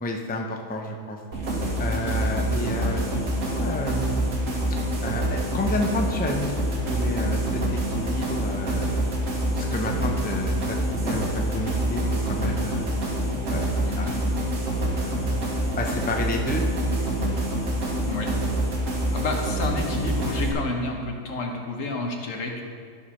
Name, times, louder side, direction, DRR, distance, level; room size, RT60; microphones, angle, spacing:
voice 1, 0.0-1.2 1.8-4.3 5.0-7.6 7.9-9.1 9.5-12.9 13.5-14.1 15.0-15.4 15.8-16.6, left 1 dB, 10° left, 1 dB, 0.5 m, -31 dB
sound 1, 1.3-20.5, right 1 dB, 75° right, 1.8 m, -26 dB
voice 2, 13.8-14.2 18.0-18.3 19.1-22.6, left 2 dB, 75° left, 2 dB, 1.5 m, -30 dB
12.0 x 4.7 x 5.7 m, 2.2 s
omnidirectional pair, 1.4 m